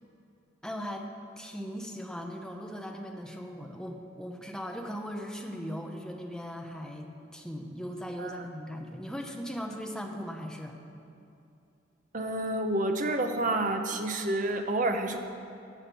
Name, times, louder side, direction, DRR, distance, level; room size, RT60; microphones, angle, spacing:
voice 1, 0.6-10.8, equal, 5° left, 2 dB, 0.9 m, -39 dB
voice 2, 12.1-15.2, right 2 dB, 40° right, 5 dB, 0.9 m, -29 dB
16.5 x 6.5 x 7.0 m, 2.6 s
head